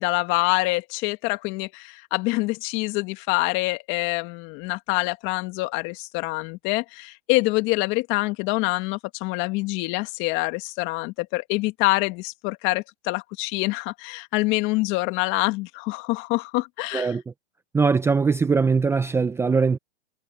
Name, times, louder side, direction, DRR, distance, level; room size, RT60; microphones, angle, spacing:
voice 1, 0.0-17.1, left 23 dB, 35° left, 1.6 m, -26 dB
voice 2, 17.7-19.8, right 5 dB, 5° right, 0.7 m, -21 dB
hypercardioid pair, 135°, 34 cm